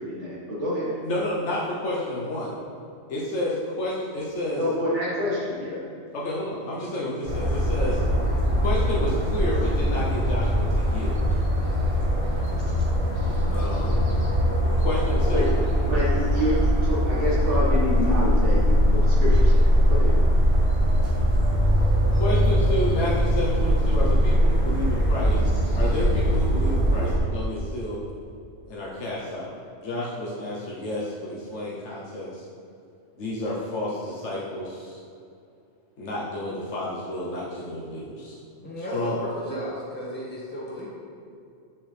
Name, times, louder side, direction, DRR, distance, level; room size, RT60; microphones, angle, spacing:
voice 1, 0.0-0.9 4.6-5.8 15.3-15.5 15.9-20.1, left 1 dB, 70° right, -8 dB, 2.0 m, -27 dB
voice 2, 1.0-2.5 3.1-4.6 6.1-8.0 8.6-11.2 13.5-14.0 14.8-15.5 22.1-28.0 28.7-29.5 29.8-32.4 33.2-35.0 36.0-38.4 38.9-39.1, left 1 dB, 70° left, -6 dB, 1.3 m, -30 dB
sound 1, 7.3-27.2, equal, 30° right, 1.1 m, -21 dB
voice 3, 38.6-40.9, equal, 10° left, -6 dB, 1.5 m, -34 dB
7.7 x 7.1 x 3.4 m, 2.5 s
omnidirectional pair, 1.2 m